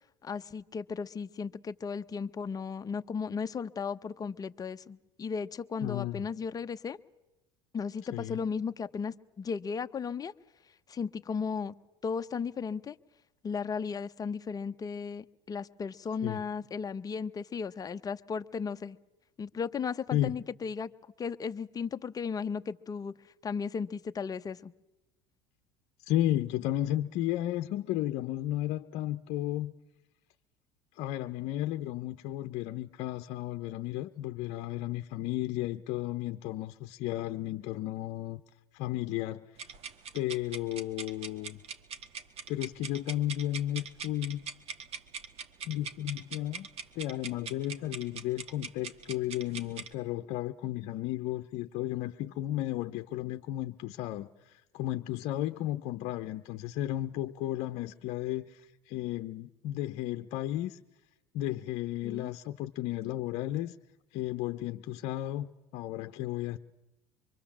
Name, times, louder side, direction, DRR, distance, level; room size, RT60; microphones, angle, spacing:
voice 1, 0.2-7.0 7.7-10.3 10.9-11.7 12.0-13.0 13.4-19.0 19.4-20.9 21.2-23.1 23.4-24.7 62.0-62.3, left 5 dB, 30° left, 0.9 m, -35 dB
voice 2, 5.8-6.3 8.1-8.4 16.2-16.4 20.1-20.4 26.1-29.7 31.0-38.4 38.7-39.5 40.1-41.6 42.5-44.4 45.6-46.7 46.9-60.8 61.3-63.8 64.1-66.6, left 14 dB, 65° left, 0.8 m, -33 dB
sound 1, 39.6-49.9, right 6 dB, 50° right, 1.7 m, -42 dB
25.0 x 23.0 x 7.3 m
supercardioid pair, 90°, 13 cm